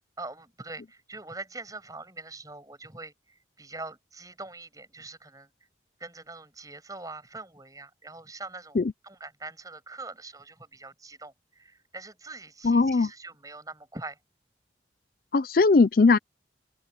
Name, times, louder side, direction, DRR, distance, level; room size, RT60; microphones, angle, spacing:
voice 1, 0.2-5.5 6.0-8.8 9.0-14.2, right 3 dB, 20° right, 6.5 m, -43 dB
voice 2, 12.6-13.1 15.3-16.2, left 3 dB, 50° left, 0.4 m, -19 dB
open air
head